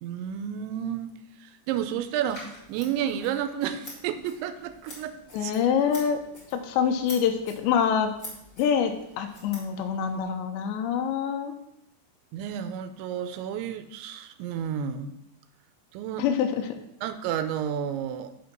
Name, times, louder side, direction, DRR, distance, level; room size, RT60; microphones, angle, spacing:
voice 1, 0.0-5.5 12.3-15.1 15.9-16.2 17.0-18.3, right 9 dB, 90° right, 10 dB, 2.9 m, -31 dB
Scissors, 2.2-10.2, left 1 dB, 30° left, 1.5 m, -47 dB
voice 2, 5.3-6.2 6.5-8.1 8.6-11.6 16.2-16.7, left 7 dB, 85° left, 5 dB, 2.8 m, -25 dB
6.8 x 5.1 x 5.9 m, 0.77 s
omnidirectional pair, 5.1 m